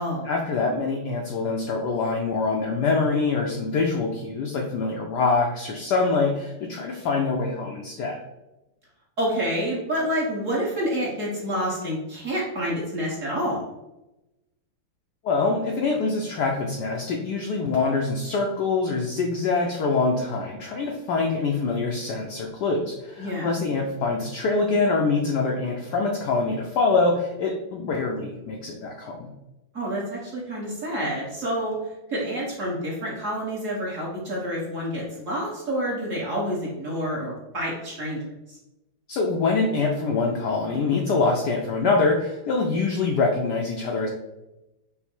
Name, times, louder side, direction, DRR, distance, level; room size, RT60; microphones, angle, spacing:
voice 1, 0.2-8.2 15.2-29.3 39.1-44.1, left 3 dB, 90° left, 1 dB, 0.9 m, -24 dB
voice 2, 9.2-13.6 23.2-23.5 29.7-31.8 32.1-38.2 38.5-38.6, equal, 45° right, -4 dB, 1.1 m, -28 dB
5.5 x 2.0 x 4.3 m, 0.98 s
omnidirectional pair, 2.4 m